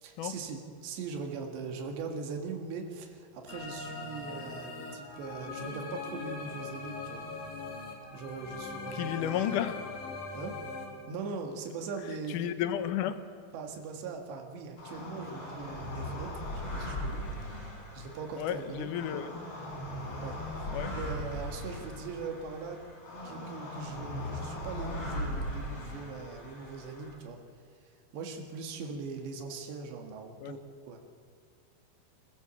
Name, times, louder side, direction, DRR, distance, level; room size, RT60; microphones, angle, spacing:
voice 1, 0.0-7.3 8.1-9.6 10.3-10.5 11.1-12.4 13.5-17.7 17.9-18.9 20.2-22.8 23.2-27.4 28.1-30.6 30.9-31.0, right 4 dB, 85° right, 3 dB, 4.0 m, -41 dB
sound 1, 3.5-10.9, left 3 dB, 60° left, 4.4 m, -41 dB
voice 2, 9.0-9.8 12.3-13.2 18.4-19.3 20.7-20.9 30.4-30.5, left 11 dB, 75° left, 10 dB, 1.9 m, -32 dB
sound 2, 14.8-27.1, left 1 dB, 35° left, 5.5 m, -39 dB
26.5 x 15.0 x 7.0 m, 2.4 s
omnidirectional pair, 4.9 m